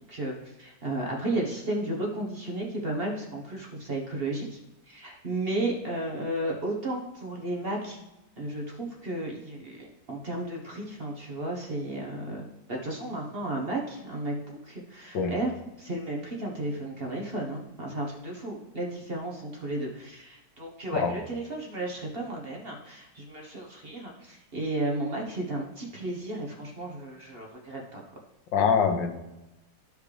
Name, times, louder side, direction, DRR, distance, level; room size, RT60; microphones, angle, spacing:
voice 1, 0.1-4.6 4.9-8.0 8.4-12.4 12.7-15.5 15.8-28.0, right 1 dB, 40° right, -1 dB, 1.1 m, -33 dB
voice 2, 28.5-29.1, left 6 dB, 80° left, 6 dB, 1.6 m, -24 dB
12.5 x 4.9 x 3.3 m, 0.96 s
omnidirectional pair, 1.9 m